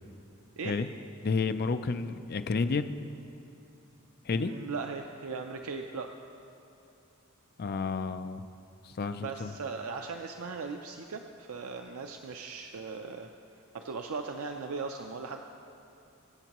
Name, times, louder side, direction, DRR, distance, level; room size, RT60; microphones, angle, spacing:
voice 1, 1.2-3.0 4.2-4.5 7.6-8.5 8.8-9.5, left 4 dB, 45° left, 10 dB, 0.4 m, -31 dB
voice 2, 4.3-6.1 9.2-13.3 13.7-15.4, right 4 dB, 80° right, 4 dB, 0.5 m, -38 dB
24.0 x 8.1 x 3.0 m, 2.9 s
head